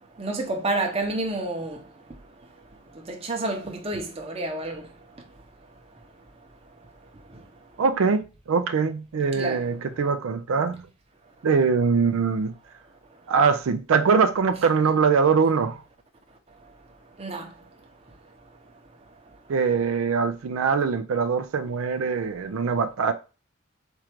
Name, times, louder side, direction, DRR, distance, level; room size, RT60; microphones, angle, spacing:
voice 1, 0.2-1.8 3.1-4.9 9.3-9.7 14.8-14.9 17.2-17.5, right 2 dB, 30° right, 0.8 m, -29 dB
voice 2, 7.8-10.8 11.4-12.5 13.3-15.8 19.5-23.1, right 5 dB, 90° right, 0.4 m, -22 dB
4.5 x 2.5 x 4.4 m
head